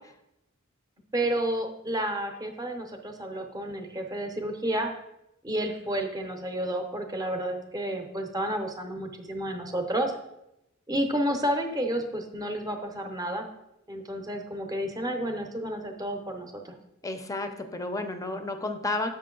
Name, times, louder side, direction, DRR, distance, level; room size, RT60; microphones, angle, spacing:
voice 1, 1.1-4.9 5.4-10.1 10.9-13.5 13.9-16.7, right 1 dB, 20° right, 4 dB, 0.7 m, -31 dB
voice 2, 17.0-19.1, left 2 dB, 15° left, 7 dB, 0.5 m, -31 dB
6.7 x 5.8 x 3.8 m, 0.87 s
head